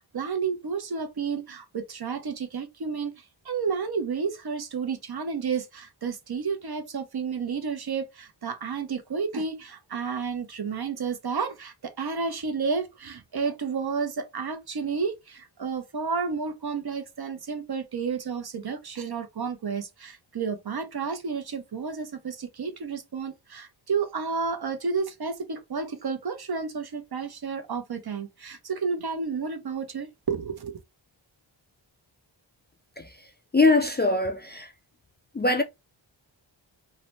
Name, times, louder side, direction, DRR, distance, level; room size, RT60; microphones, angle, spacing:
voice 1, 0.1-30.8, right 5 dB, 55° right, 0.7 m, -31 dB
voice 2, 33.0-33.3 33.5-34.7 35.3-35.6, left 3 dB, 25° left, 0.3 m, -22 dB
2.8 x 2.1 x 3.0 m
wide cardioid pair, 65°, 47 cm